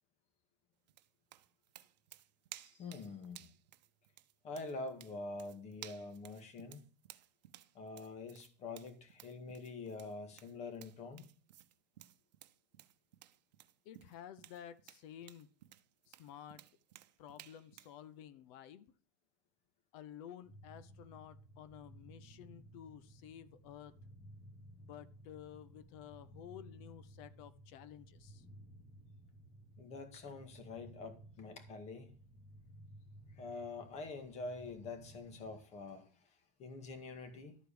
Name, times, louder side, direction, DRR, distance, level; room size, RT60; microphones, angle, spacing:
sound 1, 0.9-18.0, right 13 dB, 80° right, 0.8 m, -57 dB
voice 1, 2.6-3.5 4.4-6.9 7.7-11.3 29.8-32.2 33.3-37.6, left 3 dB, 30° left, 1.9 m, -46 dB
voice 2, 13.8-15.5 16.1-16.6 17.2-18.9 19.9-23.9 24.8-28.4, left 10 dB, 50° left, 0.8 m, -53 dB
sound 2, 20.4-35.6, right 1 dB, 5° left, 2.5 m, -57 dB
12.0 x 4.7 x 6.8 m
supercardioid pair, 135°, 21 cm